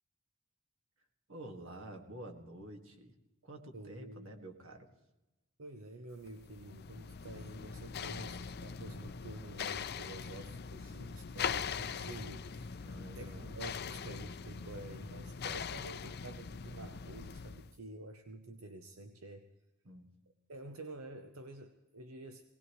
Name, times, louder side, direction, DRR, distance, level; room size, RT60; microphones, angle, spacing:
voice 1, 1.3-3.1 3.4-4.9 11.3-11.4 12.8-13.5 19.8-20.2, right 1 dB, 70° right, 2 dB, 2.0 m, -49 dB
voice 2, 3.7-4.3 5.6-19.5 20.5-22.4, right 2 dB, 85° right, 6 dB, 0.9 m, -49 dB
sound 1, 6.3-17.8, left 6 dB, 50° left, 0.5 m, -42 dB
20.0 x 18.5 x 3.2 m, 1.0 s
head